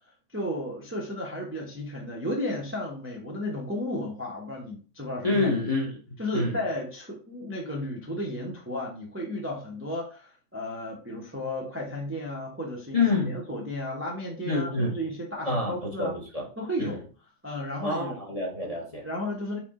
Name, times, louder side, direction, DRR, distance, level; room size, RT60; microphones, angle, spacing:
voice 1, 0.3-5.6 6.2-16.1 16.6-17.0 17.4-18.2 19.0-19.6, left 1 dB, 15° right, -2 dB, 0.5 m, -33 dB
voice 2, 5.2-5.9 6.3-6.6 12.9-13.3 14.4-15.0 15.4-16.4 16.8-17.0 17.8-19.1, left 3 dB, 35° left, -2 dB, 0.7 m, -27 dB
4.1 x 2.1 x 3.5 m, 0.37 s
omnidirectional pair, 1.5 m